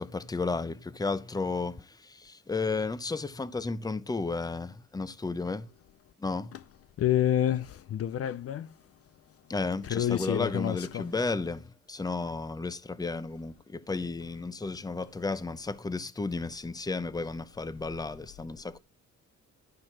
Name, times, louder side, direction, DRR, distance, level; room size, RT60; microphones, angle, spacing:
voice 1, 0.0-5.7 6.2-6.5 9.5-18.8, left 3 dB, 15° left, 0.7 m, -33 dB
voice 2, 7.0-8.7 9.8-11.1, left 11 dB, 50° left, 0.5 m, -28 dB
12.5 x 4.3 x 6.0 m
cardioid pair, 90°, 30 cm